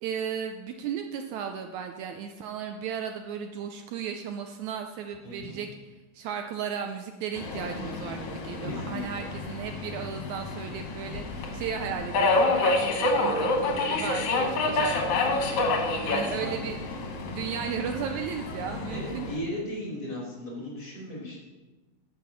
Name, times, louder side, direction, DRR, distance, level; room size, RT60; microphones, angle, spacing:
voice 1, 0.0-16.8 17.3-19.3, right 7 dB, 75° right, 6 dB, 1.9 m, -35 dB
voice 2, 5.2-5.6 8.6-9.3 16.0-16.5 18.9-21.4, left 1 dB, 30° left, -5 dB, 3.8 m, -36 dB
Subway metro underground, 7.4-19.4, left 2 dB, 70° left, 2.6 m, -28 dB
10.0 x 6.0 x 7.2 m, 1.2 s
omnidirectional pair, 3.6 m